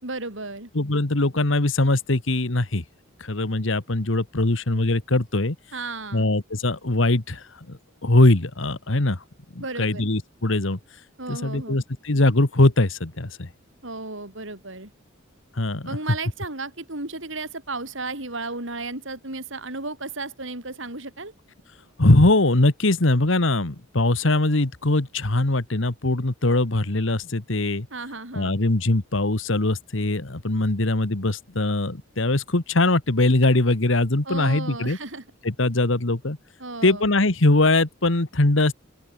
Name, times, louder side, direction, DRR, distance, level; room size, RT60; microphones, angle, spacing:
voice 1, 0.0-0.7 5.7-6.3 9.6-10.1 11.2-11.8 13.8-14.9 15.9-21.3 27.9-28.6 34.2-35.2 36.6-37.1, right 3 dB, 65° right, 5.2 m, -34 dB
voice 2, 0.7-2.8 3.2-5.5 6.1-9.2 9.8-10.8 11.3-13.5 15.6-15.9 22.0-27.9 28.3-35.0 35.4-36.4 36.8-38.7, left 2 dB, 65° left, 1.7 m, -21 dB
open air
head